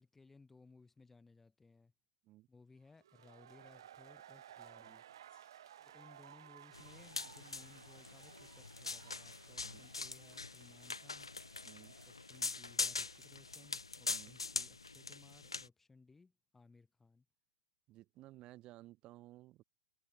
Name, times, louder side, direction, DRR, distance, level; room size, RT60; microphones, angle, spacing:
voice 1, 0.0-1.9 2.5-5.0 5.8-11.3 12.0-17.2, left 3 dB, 10° left, 1.5 m, -63 dB
sound 1, 3.0-14.6, right 11 dB, 60° right, 0.5 m, -59 dB
Gong, 5.2-8.4, left 10 dB, 25° left, 7.3 m, -82 dB
sound 2, 6.7-15.7, left 3 dB, 85° left, 0.6 m, -43 dB
voice 2, 11.6-11.9 14.1-14.4 17.9-19.6, right 17 dB, 35° right, 1.1 m, -57 dB
figure-of-eight pair, 105°, 3 cm